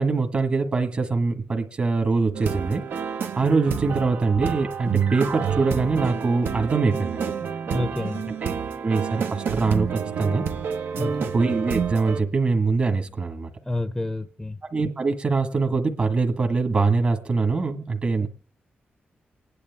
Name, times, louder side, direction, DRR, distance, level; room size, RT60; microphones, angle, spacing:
voice 1, 0.0-2.8 3.4-7.3 8.4-8.5 8.8-10.4 11.3-13.5 14.7-18.3, right 4 dB, 40° right, 4 dB, 1.5 m, -23 dB
sound 1, 2.3-12.2, right 7 dB, 75° right, 1.0 m, -29 dB
voice 2, 7.7-8.3 11.0-11.3 13.7-14.6 18.2-18.3, left 2 dB, 10° left, 12 dB, 0.7 m, -29 dB
29.5 x 10.0 x 3.5 m, 0.41 s
wide cardioid pair, 120°, 4 cm